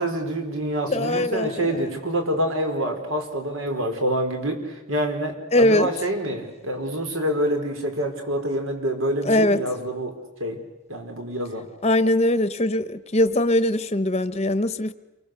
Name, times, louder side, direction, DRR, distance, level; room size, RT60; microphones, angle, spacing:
voice 1, 0.0-10.6 10.9-11.7, right 1 dB, 80° right, 5 dB, 4.8 m, -27 dB
voice 2, 0.8-1.8 5.5-5.9 9.2-9.6 11.8-14.9, left 1 dB, 30° left, 12 dB, 0.9 m, -21 dB
29.0 x 23.5 x 6.8 m, 1.1 s
head